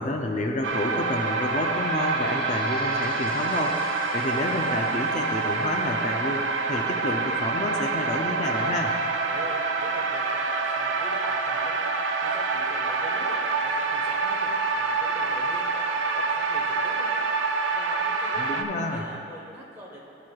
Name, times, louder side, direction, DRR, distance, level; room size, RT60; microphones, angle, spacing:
voice 1, 0.0-3.8 4.1-9.0 18.4-19.1, left 1 dB, 40° left, 2 dB, 0.5 m, -29 dB
sound 1, 0.6-18.6, right 4 dB, 90° right, 0.6 m, -27 dB
sound 2, 0.8-13.9 14.5-14.6 14.9-15.0 15.8-15.9, left 1 dB, 5° left, 1.9 m, -42 dB
voice 2, 9.3-11.9 12.2-14.5 14.8-17.3 17.7-18.4 18.8-20.1, equal, 15° right, -4 dB, 1.2 m, -44 dB
13.0 x 7.6 x 2.4 m, 2.7 s
head